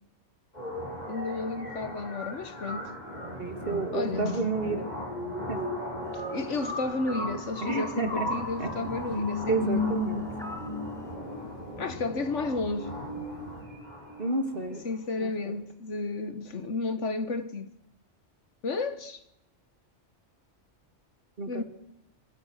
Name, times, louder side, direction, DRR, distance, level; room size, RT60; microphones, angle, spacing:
sound 1, 0.5-14.5, left 2 dB, 35° left, 6.6 m, -35 dB
voice 1, 1.1-2.9 3.9-4.4 6.1-10.0 11.8-12.9 14.8-17.7 18.6-19.2 21.5-21.6, left 3 dB, 85° left, 1.8 m, -32 dB
voice 2, 3.4-4.9 5.5-5.6 7.6-8.3 8.6-8.7 9.5-10.3 14.2-14.8 15.2-15.5 21.4-21.6, right 3 dB, 50° right, 3.0 m, -31 dB
sound 2, 7.1-7.5 10.4-10.8, left 1 dB, ahead, 1.9 m, -42 dB
sound 3, 8.1-13.6, equal, 60° left, 5.8 m, -46 dB
26.0 x 25.0 x 6.6 m
omnidirectional pair, 1.2 m